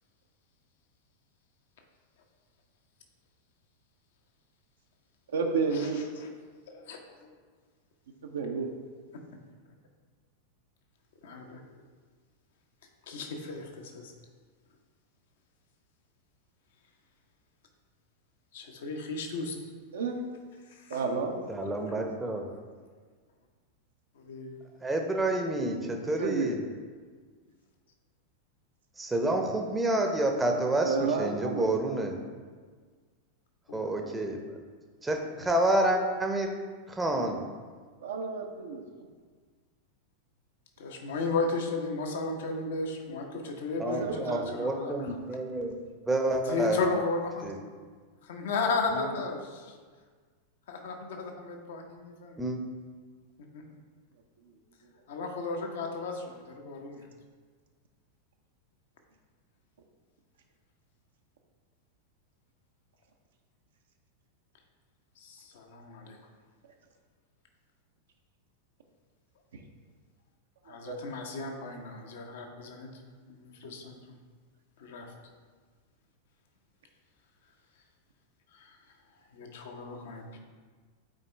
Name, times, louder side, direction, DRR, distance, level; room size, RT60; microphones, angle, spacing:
voice 1, 5.3-6.0 8.2-8.7 19.9-20.2 20.9-22.1 26.0-26.6 30.8-31.7 38.0-38.8 43.9-45.0 54.4-54.5 69.5-69.6 70.7-71.0, right 4 dB, 65° right, 2 dB, 0.7 m, -32 dB
voice 2, 6.7-7.2 9.1-9.2 11.2-11.6 13.1-14.1 18.5-19.6 20.8-21.0 21.9-22.0 24.2-24.5 33.7-33.8 40.8-45.1 46.4-47.6 48.2-49.7 50.7-52.4 53.5-53.6 55.1-57.1 65.2-66.2 70.6-72.9 73.3-74.0 74.8-75.1 78.5-78.8 79.3-80.4, left 3 dB, 60° left, 3 dB, 0.9 m, -35 dB
voice 3, 21.5-22.5 24.8-26.6 29.0-32.2 33.7-34.4 35.0-36.5 36.9-37.4 43.8-45.7 46.1-46.8 47.4-47.5 48.9-49.1 52.4-52.6, right 1 dB, 10° right, 3 dB, 0.7 m, -29 dB
8.7 x 4.4 x 3.3 m, 1.5 s
figure-of-eight pair, 90°, 0 cm